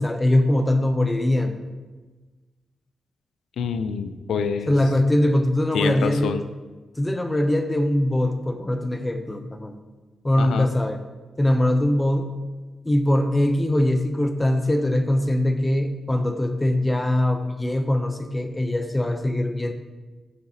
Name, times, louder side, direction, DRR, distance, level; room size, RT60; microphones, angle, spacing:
voice 1, 0.0-1.6 4.7-6.4 7.0-9.7 10.2-11.0 11.4-12.3 12.9-19.7, left 1 dB, 15° left, 7 dB, 0.5 m, -22 dB
voice 2, 3.6-4.7 5.7-6.4 10.4-10.7, left 6 dB, 90° left, 10 dB, 0.3 m, -26 dB
11.5 x 4.0 x 2.7 m, 1.3 s
cardioid pair, 85°, 0 cm